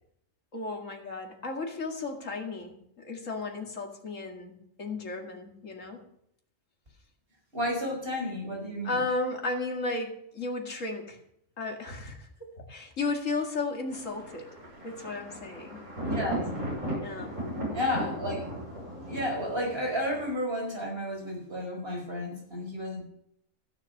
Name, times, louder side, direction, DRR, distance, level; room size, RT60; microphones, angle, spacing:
voice 1, 0.5-6.0 8.8-11.2 11.6-14.5 14.8-15.8 17.0-17.4, left 3 dB, 75° left, 1 dB, 2.5 m, -34 dB
voice 2, 7.5-9.1 16.0-16.4 17.7-18.5 19.1-23.0, left 1 dB, 45° right, -1 dB, 5.3 m, -32 dB
Thunder, 13.9-20.3, right 1 dB, 75° right, 6.9 m, -36 dB
16.0 x 7.5 x 6.6 m, 0.73 s
omnidirectional pair, 1.3 m